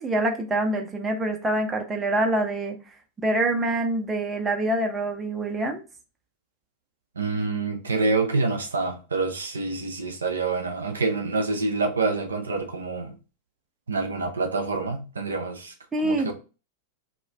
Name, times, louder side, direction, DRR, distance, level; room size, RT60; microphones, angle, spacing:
voice 1, 0.0-2.8 3.2-5.8 15.9-16.3, right 1 dB, 15° right, 0.5 m, -25 dB
voice 2, 7.2-13.1 13.9-15.7 16.0-16.3, right 3 dB, 75° right, 0.4 m, -27 dB
2.3 x 2.1 x 3.2 m
figure-of-eight pair, 90°, 0 cm